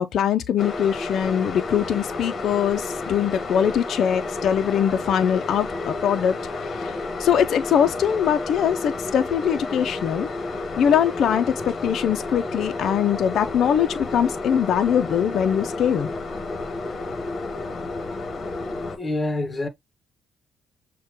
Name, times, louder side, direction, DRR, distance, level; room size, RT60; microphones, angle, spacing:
voice 1, 0.0-6.3 6.6-10.3 10.8-16.1, left 8 dB, 70° left, 0.4 m, -22 dB
sound 1, 0.6-19.0, left 3 dB, 45° left, 1.0 m, -31 dB
voice 2, 19.0-19.7, left 2 dB, 20° left, 1.1 m, -26 dB
6.5 x 2.2 x 2.9 m
cardioid pair, 90°, 0 cm